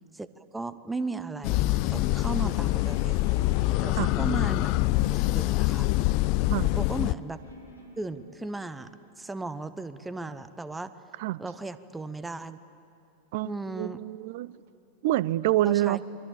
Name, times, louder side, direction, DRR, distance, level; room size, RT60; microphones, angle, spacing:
voice 1, 0.5-3.2 3.8-4.7 5.1-5.9 6.7-7.4 8.0-8.9 9.2-10.9 11.4-12.6 13.4-14.0 15.6-16.0, right 3 dB, 10° right, 13 dB, 0.9 m, -36 dB
sound 1, 1.4-7.1, left 18 dB, 45° left, 0.5 m, -25 dB
sound 2, 2.1-8.7, right 1 dB, 90° left, 3.9 m, -49 dB
voice 2, 13.3-14.5 15.0-16.0, right 15 dB, 50° right, 21 dB, 0.6 m, -27 dB
28.0 x 24.0 x 8.6 m, 2.8 s
figure-of-eight pair, 90°, 0 cm